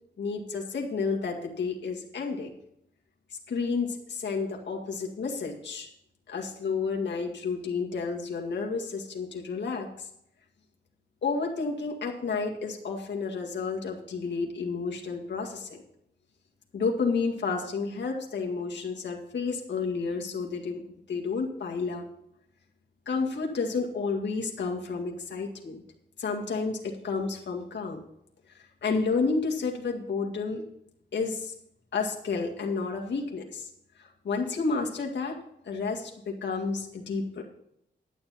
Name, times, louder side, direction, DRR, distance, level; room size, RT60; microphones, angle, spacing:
voice 1, 0.2-2.5 3.5-5.9 6.3-10.1 11.2-15.8 16.7-20.8 21.1-22.1 23.1-25.8 26.2-28.0 28.5-30.6 31.1-31.5 31.9-33.7 34.0-35.4 35.7-37.5, left 4 dB, 80° left, 0 dB, 1.9 m, -31 dB
11.5 x 9.8 x 4.3 m, 0.76 s
wide cardioid pair, 160°, 18 cm